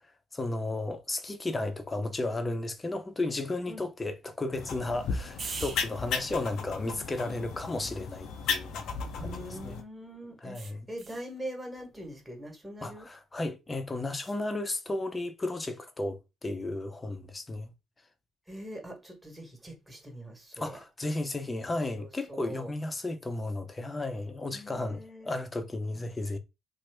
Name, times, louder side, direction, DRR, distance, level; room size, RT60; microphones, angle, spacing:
voice 1, 0.3-8.9 9.2-9.8 10.4-10.9 12.8-17.7 20.6-26.4, left 2 dB, 25° left, 0.7 m, -34 dB
sound 1, 4.5-9.8, left 5 dB, 70° left, 0.6 m, -35 dB
sound 2, 5.4-9.8 10.5-11.3 14.1-14.4, right 5 dB, 45° right, 0.6 m, -46 dB
voice 2, 9.1-13.1 18.5-20.8 22.0-22.7 24.5-25.4, right 1 dB, 10° right, 1.3 m, -43 dB
2.9 x 2.0 x 3.4 m
hypercardioid pair, 55°, 0 cm